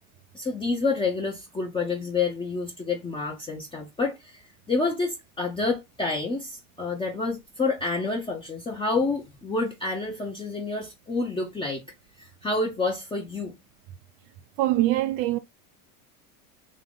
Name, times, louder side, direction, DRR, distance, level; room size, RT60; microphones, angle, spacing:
voice 1, 0.3-11.8 12.2-13.5, left 3 dB, 10° left, 0.7 m, -28 dB
voice 2, 14.6-15.4, right 15 dB, 55° right, 0.5 m, -23 dB
3.8 x 2.8 x 3.5 m
supercardioid pair, 115°, 45 cm